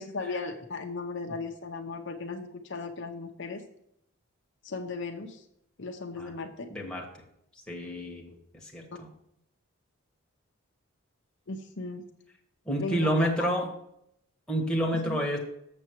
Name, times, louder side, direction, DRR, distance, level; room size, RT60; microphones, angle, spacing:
voice 1, 0.0-3.6 4.6-5.4 5.8-6.7 11.5-12.0 12.8-13.5 15.1-15.2, left 3 dB, 55° left, 4 dB, 0.7 m, -36 dB
voice 2, 6.7-7.1 7.7-8.3 8.6-9.1 12.7-13.7 14.5-15.4, equal, 5° left, -1 dB, 1.3 m, -29 dB
7.0 x 6.9 x 4.6 m, 0.77 s
head